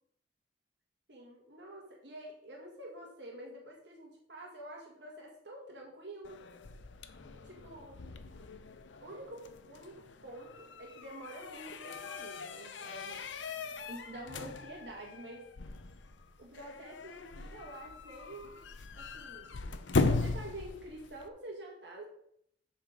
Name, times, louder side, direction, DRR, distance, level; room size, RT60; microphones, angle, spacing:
voice 1, 1.1-6.4 7.4-8.0 9.0-13.2 13.9-15.5 16.4-18.6 18.9-19.6 19.9-22.1, right 1 dB, 70° right, -1 dB, 1.6 m, -48 dB
sound 1, 6.2-21.3, left 3 dB, 90° left, 0.7 m, -39 dB
7.7 x 4.3 x 6.4 m, 0.69 s
head